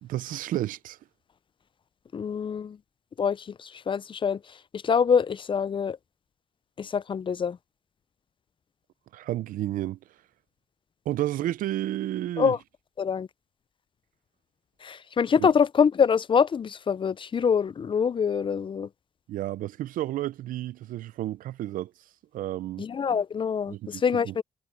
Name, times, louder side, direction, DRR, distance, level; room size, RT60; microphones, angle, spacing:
voice 1, 0.0-1.0 9.1-10.0 11.1-12.5 19.3-21.9 22.3-22.9 23.7-24.4, right 14 dB, 85° right, 0.6 m, -31 dB
voice 2, 2.1-2.8 3.2-6.0 6.8-7.6 12.4-12.6 13.0-13.3 14.8-18.9 22.8-24.4, left 6 dB, 40° left, 0.4 m, -25 dB
cardioid pair, 75°, 14 cm